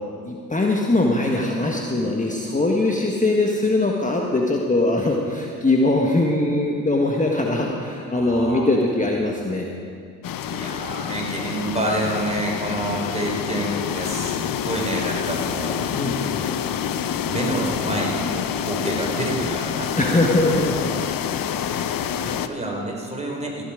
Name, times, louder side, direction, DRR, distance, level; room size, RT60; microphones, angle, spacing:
voice 1, 0.2-9.7 15.9-16.4 20.0-20.9 21.7-21.9, left 2 dB, 20° left, -1 dB, 1.5 m, -21 dB
voice 2, 8.1-8.7 9.0-9.1 10.4-15.9 16.2-16.6 16.9-20.1 22.2-23.6, right 1 dB, 15° right, -1 dB, 4.1 m, -28 dB
sound 1, 10.2-22.5, left 9 dB, 60° left, 0.8 m, -27 dB
15.0 x 11.5 x 5.0 m, 2.3 s
supercardioid pair, 55°, 40 cm